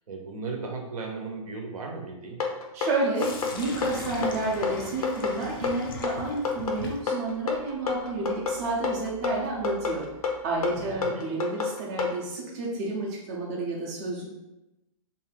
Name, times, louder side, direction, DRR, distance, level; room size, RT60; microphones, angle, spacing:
voice 1, 0.1-2.4 10.6-11.2, right 4 dB, 75° right, 1 dB, 0.8 m, -36 dB
sound 1, 2.4-12.2, left 5 dB, 90° left, 0.6 m, -29 dB
voice 2, 2.7-10.0 10.4-14.3, right 3 dB, 25° right, -4 dB, 0.5 m, -30 dB
Sink (filling or washing), 3.1-11.1, left 4 dB, 40° left, 0.4 m, -42 dB
2.6 x 2.4 x 3.2 m, 0.94 s
hypercardioid pair, 165°, 19 cm